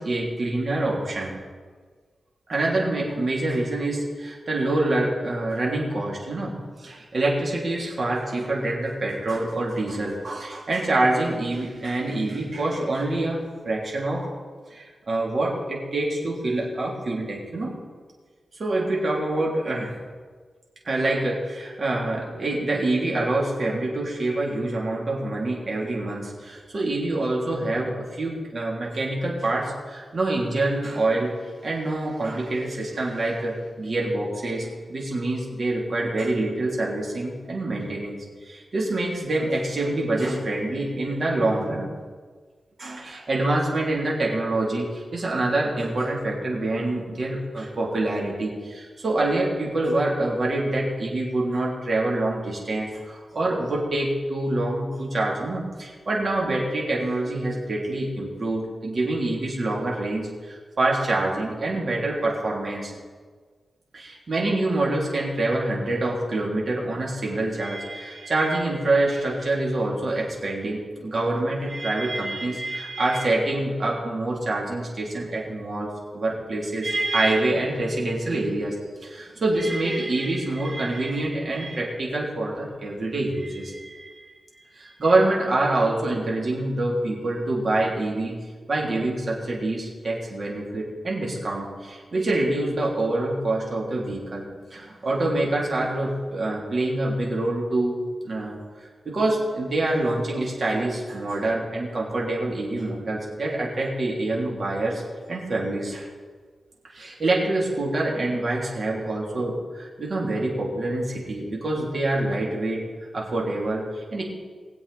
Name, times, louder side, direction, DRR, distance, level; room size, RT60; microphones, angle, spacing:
voice 1, 0.0-1.4 2.5-6.5 6.8-13.4 13.6-14.3 14.7-17.7 18.6-20.0 20.8-31.3 31.6-41.9 42.8-62.9 63.9-75.9 76.1-84.2 84.6-88.3 88.7-94.5 94.7-98.0 98.2-105.0 105.3-106.1 106.9-112.8 113.1-114.2, right 2 dB, 50° right, -3 dB, 3.1 m, -26 dB
20.5 x 7.9 x 4.2 m, 1.5 s
wide cardioid pair, 105°, 0 cm